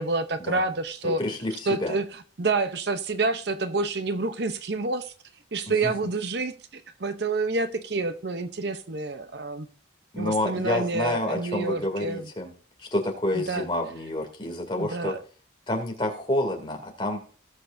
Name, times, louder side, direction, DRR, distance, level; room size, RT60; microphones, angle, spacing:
voice 1, 0.0-1.2 1.7-2.0 2.4-5.1 5.5-9.7 10.2-12.3 13.3-13.7 14.8-15.2, right 3 dB, 55° right, 10 dB, 0.8 m, -28 dB
voice 2, 1.0-2.0 5.7-5.9 10.1-12.5 12.8-15.1 15.7-17.2, left 1 dB, 25° left, 2 dB, 2.6 m, -29 dB
18.5 x 6.6 x 2.6 m, 0.42 s
head